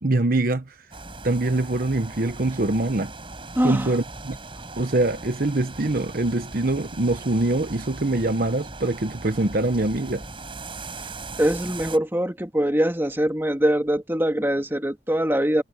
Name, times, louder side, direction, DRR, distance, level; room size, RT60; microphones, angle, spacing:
voice 1, 0.0-0.7 1.2-3.1 3.6-4.4 4.8-10.2, right 2 dB, 50° right, 1.1 m, -24 dB
sound 1, 0.9-12.0, right 3 dB, 30° right, 6.0 m, -39 dB
voice 2, 3.6-3.9 11.4-15.6, right 1 dB, 10° right, 2.2 m, -23 dB
head